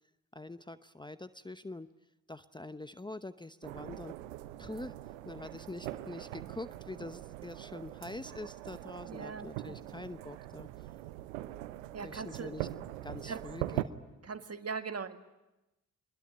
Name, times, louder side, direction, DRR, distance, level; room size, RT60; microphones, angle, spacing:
voice 1, 0.3-1.9 2.3-4.1 4.6-5.0 5.2-10.7 12.0-12.7 13.0-13.9, left 2 dB, 10° left, 13 dB, 0.9 m, -44 dB
sound 1, 3.6-13.8, right 15 dB, 85° right, 0.8 m, -42 dB
voice 2, 9.1-9.8 11.9-12.6 13.3-13.4 14.2-15.2, right 5 dB, 40° right, 9 dB, 1.8 m, -40 dB
24.0 x 21.5 x 9.8 m, 0.99 s
hypercardioid pair, 40°, 38 cm